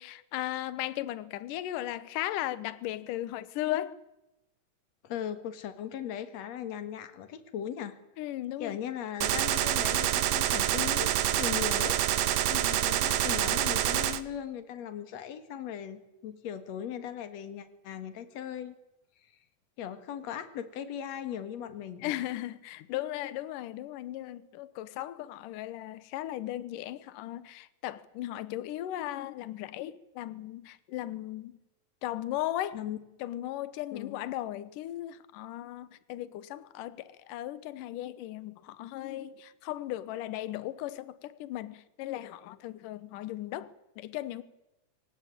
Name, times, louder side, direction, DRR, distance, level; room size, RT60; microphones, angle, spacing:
voice 1, 0.0-4.0 8.2-8.8 12.5-12.9 22.0-31.6 32.0-32.8 33.2-44.4, left 14 dB, 75° left, 2.6 m, -37 dB
voice 2, 5.0-8.0 8.6-12.0 12.3-12.5 12.8-18.8 19.8-22.2 32.7-33.0 33.9-34.2, left 9 dB, 55° left, 2.8 m, -38 dB
Gunshot gunfire, 9.2-14.2, right 12 dB, 75° right, 2.6 m, -27 dB
25.0 x 18.0 x 9.0 m
omnidirectional pair, 3.9 m